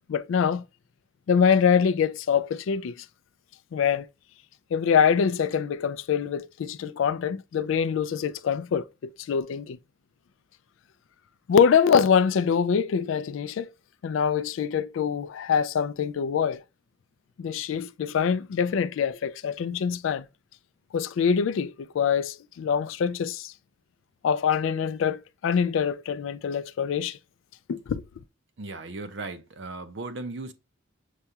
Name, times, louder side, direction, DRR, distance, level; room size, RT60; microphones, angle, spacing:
voice 1, 0.1-0.6 1.3-3.1 3.7-4.1 4.7-9.8 11.5-13.7 14.0-16.6 17.4-20.2 20.9-23.5 24.2-27.2 27.7-28.0, left 7 dB, 75° left, 0.3 m, -24 dB
voice 2, 28.6-30.5, right 3 dB, 60° right, 0.6 m, -36 dB
6.5 x 2.3 x 2.8 m
head